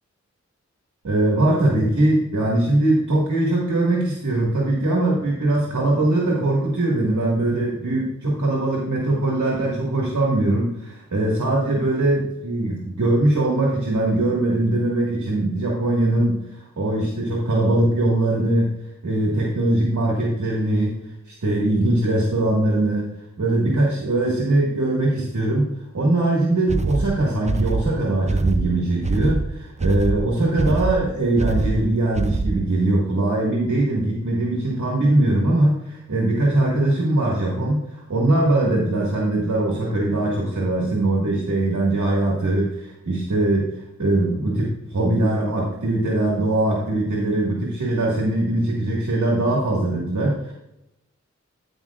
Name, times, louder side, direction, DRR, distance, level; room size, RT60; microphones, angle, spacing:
voice 1, 1.0-20.9 21.3-23.1 23.4-25.6 25.9-50.5, right 2 dB, 80° right, -4 dB, 1.9 m, -21 dB
sound 1, 26.7-32.8, right 3 dB, 25° right, 0.5 m, -25 dB
15.5 x 5.4 x 2.4 m, 0.88 s
wide cardioid pair, 60°, 29 cm